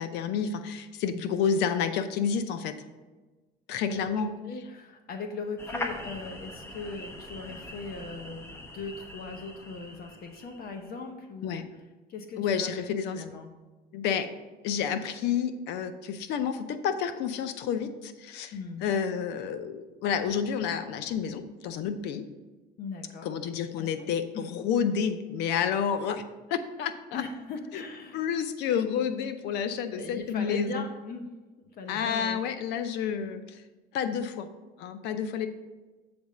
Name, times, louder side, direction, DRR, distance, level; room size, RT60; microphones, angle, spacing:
voice 1, 0.0-2.8 3.7-4.3 11.4-11.6 12.4-13.2 13.9-14.3 14.6-18.5 18.8-22.3 23.2-26.2 26.5-27.2 27.7-27.8 28.1-30.9 31.9-33.6 33.9-34.5 34.8-35.5, left 7 dB, 90° left, 10 dB, 0.6 m, -30 dB
voice 2, 3.9-11.6 12.1-12.7 13.1-13.5 18.5-18.8 22.8-23.9 24.3-24.5 27.1-28.3 29.9-31.3 31.8-32.4, left 4 dB, 60° left, 5 dB, 0.9 m, -39 dB
sound 1, 5.6-10.9, left 2 dB, 15° left, 0.9 m, -41 dB
7.9 x 3.5 x 6.4 m, 1.2 s
cardioid pair, 110°, 17 cm